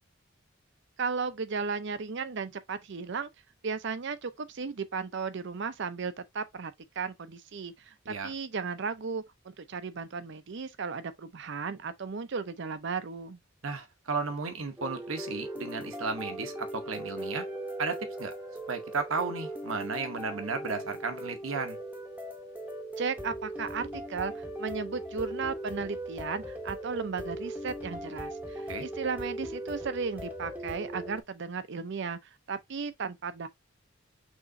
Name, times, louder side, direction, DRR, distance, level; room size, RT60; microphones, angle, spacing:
voice 1, 1.0-3.3 3.6-13.4 23.0-33.5, right 5 dB, 60° right, 0.6 m, -35 dB
voice 2, 13.6-17.5 17.8-18.3 18.7-21.8 28.7-28.8, right 4 dB, 75° right, 1.0 m, -34 dB
sound 1, 14.8-31.2, right 1 dB, 10° right, 0.8 m, -39 dB
6.3 x 3.0 x 2.6 m
head